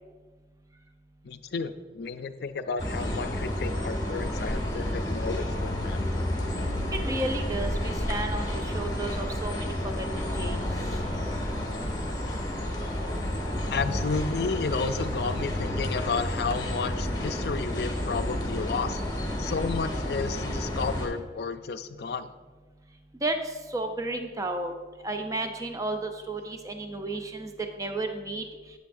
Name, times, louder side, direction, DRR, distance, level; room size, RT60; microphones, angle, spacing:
voice 1, 1.2-6.3 13.7-19.0 19.4-22.3, left 4 dB, 60° left, 10 dB, 0.4 m, -32 dB
sound 1, 2.8-21.1, left 1 dB, 25° left, 1.5 m, -30 dB
voice 2, 6.9-10.6 23.2-23.4 23.7-24.7 25.0-27.5 27.8-28.4, right 2 dB, 20° right, 6 dB, 0.5 m, -32 dB
9.3 x 8.5 x 2.6 m, 1.4 s
head